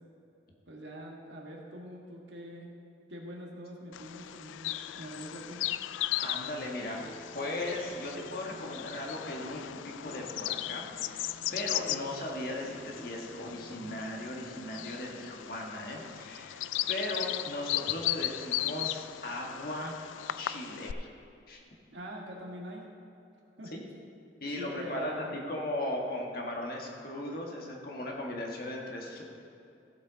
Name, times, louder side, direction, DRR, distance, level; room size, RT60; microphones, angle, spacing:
voice 1, 0.7-2.7 3.1-5.7 21.9-22.8 23.6-23.7 24.6-25.3, equal, 70° right, -1 dB, 1.7 m, -44 dB
Bird vocalization bird call bird song, 3.9-20.9, left 14 dB, 85° left, 0.3 m, -37 dB
voice 2, 6.2-7.1 7.3-20.0 20.4-21.1 21.5-21.6 23.7-23.8 24.4-29.2, left 1 dB, 50° left, 0 dB, 1.5 m, -37 dB
sound 1, 7.0-16.1, left 1 dB, 20° left, 0.6 m, -52 dB
15.5 x 7.4 x 4.0 m, 2.7 s
head